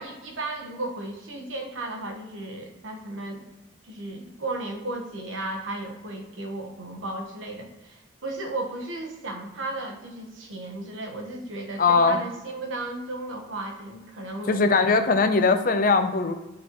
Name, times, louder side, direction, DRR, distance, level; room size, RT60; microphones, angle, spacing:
voice 1, 0.0-3.5 3.8-15.0, right 2 dB, 85° right, 3 dB, 1.1 m, -35 dB
voice 2, 11.8-12.2 14.5-16.3, left 4 dB, 45° left, 8 dB, 0.5 m, -20 dB
11.5 x 4.2 x 3.0 m, 1.0 s
head